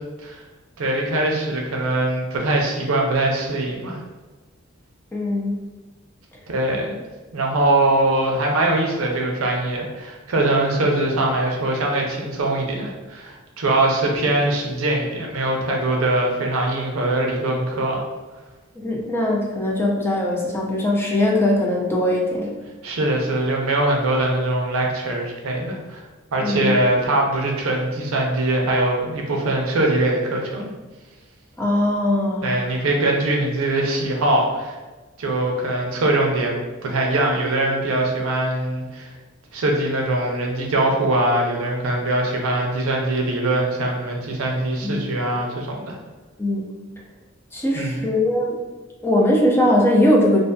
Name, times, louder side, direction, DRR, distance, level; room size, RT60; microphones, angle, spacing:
voice 1, 0.8-4.0 6.5-7.0 7.3-18.0 22.8-26.0 26.3-30.7 32.4-34.8 35.2-39.1 39.5-46.0 47.7-48.1, right 2 dB, 80° right, 0 dB, 0.5 m, -22 dB
voice 2, 5.1-5.6 18.8-22.5 26.4-26.7 31.6-32.5 44.8-45.0 46.4-46.7 47.5-48.6 49.0-50.4, left 1 dB, 10° left, -2 dB, 0.4 m, -20 dB
2.6 x 2.4 x 2.2 m, 1.2 s
head